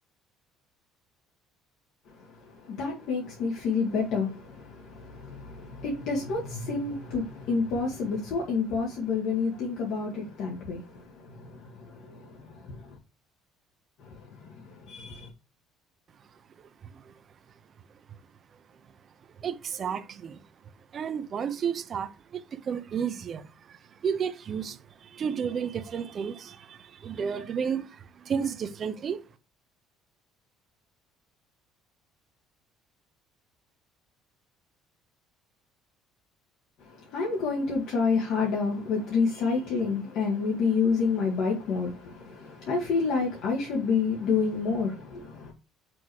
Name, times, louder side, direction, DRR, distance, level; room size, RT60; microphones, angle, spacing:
voice 1, 2.1-13.0 14.0-15.3 36.8-45.5, left 4 dB, 60° left, 2.1 m, -29 dB
voice 2, 16.8-17.1 19.4-20.4 20.9-29.2, right 7 dB, 30° right, 0.6 m, -32 dB
6.1 x 3.6 x 4.7 m
cardioid pair, 155°, 0 cm